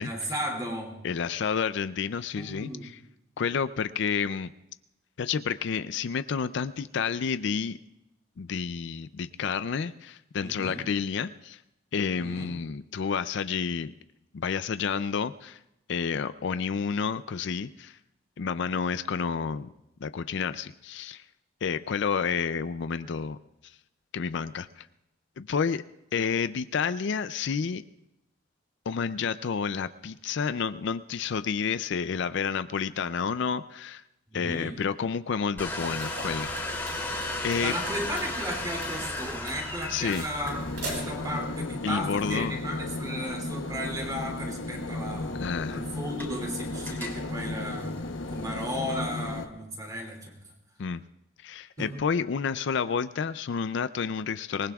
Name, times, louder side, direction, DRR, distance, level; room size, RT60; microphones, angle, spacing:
voice 1, 0.0-1.0 2.3-3.0 10.4-10.9 12.2-12.6 34.3-34.8 37.3-45.4 45.7-48.0 48.3-50.4 51.8-52.0, equal, 20° right, 0 dB, 2.7 m, -35 dB
voice 2, 1.0-3.0 3.4-4.5 5.2-7.8 8.4-11.6 11.9-13.9 14.3-15.6 15.9-18.0 18.4-19.7 20.0-21.2 21.6-23.4 24.1-24.9 25.4-25.8 26.1-27.8 28.9-34.0 34.3-36.5 37.4-37.7 39.9-40.2 41.8-42.6 45.4-45.8 50.8-51.0 51.4-54.7, left 6 dB, 65° left, 13 dB, 0.4 m, -30 dB
Domestic sounds home sounds, 35.6-48.7, left 2 dB, 10° left, 2.8 m, -38 dB
sound 1, 35.7-41.2, right 2 dB, 65° right, 5.4 m, -41 dB
sound 2, 40.4-49.5, left 2 dB, 80° left, 0.9 m, -35 dB
25.5 x 19.5 x 2.3 m, 0.88 s
head